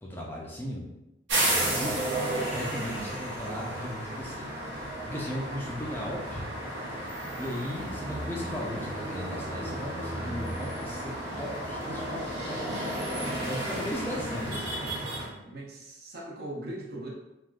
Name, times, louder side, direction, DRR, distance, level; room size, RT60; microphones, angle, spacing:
voice 1, 0.0-0.9 1.5-6.5 7.4-12.2 12.5-15.1, equal, 10° left, -3 dB, 0.4 m, -37 dB
sound 1, 1.3-15.3, right 1 dB, 80° right, 1.0 m, -33 dB
voice 2, 1.6-1.9 2.9-3.1 7.8-8.0 15.2-17.1, right 1 dB, 55° right, -2 dB, 0.6 m, -40 dB
3.4 x 2.4 x 2.3 m, 0.94 s
head